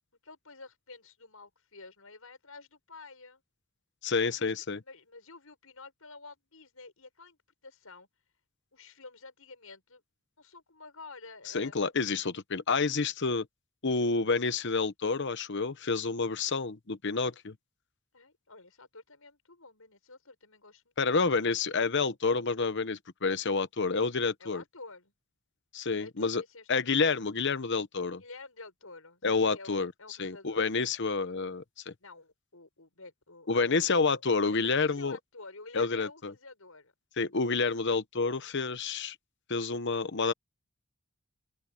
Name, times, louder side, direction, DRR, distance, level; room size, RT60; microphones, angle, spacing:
voice 1, 0.2-3.4 4.1-4.5 4.8-7.4 7.6-8.1 8.7-10.0 10.4-11.7 14.5-14.6 18.1-21.2 24.4-25.1 26.0-26.8 28.2-30.6 32.0-34.1 34.5-36.9, left 3 dB, 80° left, 7.1 m, -50 dB
voice 2, 4.0-4.8 11.5-13.5 13.8-17.5 21.0-24.6 25.7-26.4 26.7-28.2 29.2-29.9 30.2-31.9 33.5-35.2 35.7-36.3 37.2-39.2 39.5-40.3, left 4 dB, 55° left, 1.0 m, -29 dB
open air
head